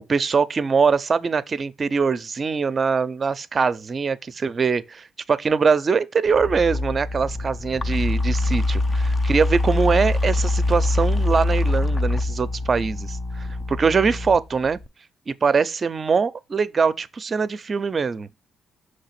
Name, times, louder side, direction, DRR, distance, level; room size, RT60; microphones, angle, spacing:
voice 1, 0.1-14.8 15.3-18.3, right 5 dB, 40° right, 0.5 m, -22 dB
sound 1, 6.3-14.9, left 2 dB, 25° left, 0.5 m, -24 dB
5.9 x 3.2 x 5.7 m
cardioid pair, 90°, 0 cm